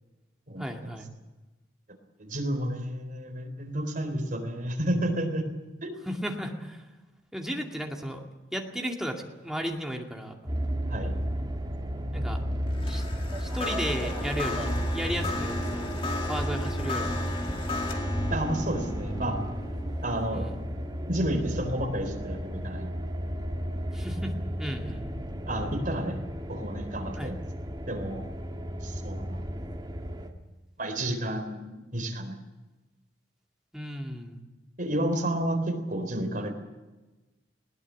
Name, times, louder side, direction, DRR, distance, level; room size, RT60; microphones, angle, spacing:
voice 1, 0.6-1.1 6.1-6.8 7.3-8.2 8.5-10.3 12.1-12.4 12.8-13.0 13.4-15.9 16.2-17.2 20.3-20.6 23.9-24.3 24.6-25.1 27.2-27.3 33.7-34.4, equal, 5° right, 1 dB, 2.3 m, -34 dB
voice 2, 2.2-5.4 5.8-6.0 10.9-11.1 18.3-19.4 20.0-20.5 21.1-22.9 25.5-26.2 26.5-27.4 27.9-28.2 28.8-29.5 30.8-32.3 34.8-36.5, right 1 dB, 45° right, 4 dB, 4.0 m, -31 dB
sound 1, 10.5-30.3, equal, 20° right, 2.0 m, -33 dB
sound 2, 12.7-22.0, left 2 dB, 30° left, 2.2 m, -36 dB
20.5 x 18.5 x 8.5 m, 1.1 s
head